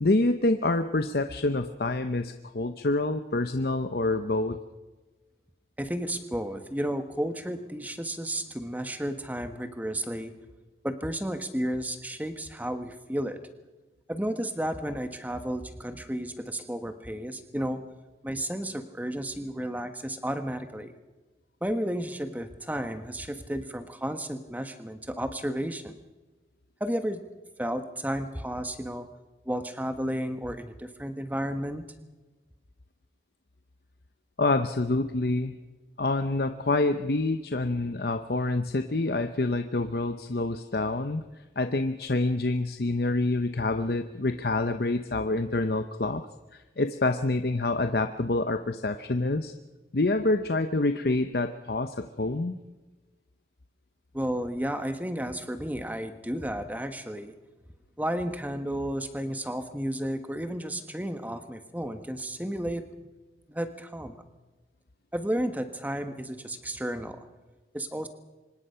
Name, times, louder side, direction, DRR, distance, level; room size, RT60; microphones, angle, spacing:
voice 1, 0.0-4.6 34.4-35.5 36.0-41.2 41.6-46.2 46.8-49.5 49.9-52.6, left 2 dB, 60° left, 8 dB, 0.8 m, -27 dB
voice 2, 5.8-10.3 10.8-13.4 14.1-17.8 18.2-20.9 21.6-26.0 26.8-27.2 27.6-29.1 29.4-31.8 54.1-57.4 58.0-62.8 63.5-64.3 65.1-67.2 67.7-68.1, equal, 10° right, 8 dB, 1.3 m, -32 dB
25.0 x 20.5 x 5.7 m, 1.2 s
head